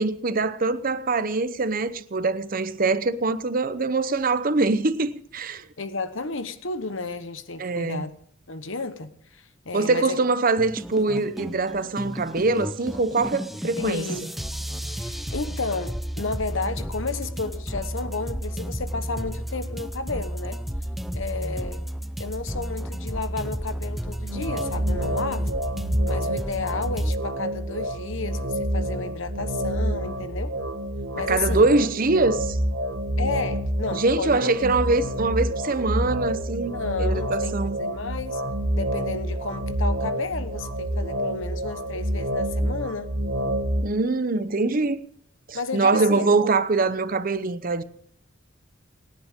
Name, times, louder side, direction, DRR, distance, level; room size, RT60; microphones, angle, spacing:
voice 1, 0.0-5.6 7.6-8.0 9.7-14.1 31.3-32.6 33.9-37.8 43.8-45.0 45.5-47.8, right 3 dB, 45° right, 0.8 m, -23 dB
voice 2, 5.8-8.1 8.5-10.2 13.7-14.3 14.9-20.6 21.1-21.8 22.2-25.6 26.0-30.5 31.1-31.7 33.2-34.4 36.7-38.4 38.8-43.1 45.5-46.3, left 3 dB, 70° left, 1.2 m, -32 dB
sound 1, 10.6-27.2, equal, ahead, 0.7 m, -32 dB
sound 2, 24.2-43.8, right 1 dB, 90° right, 2.1 m, -28 dB
29.0 x 10.0 x 3.7 m
head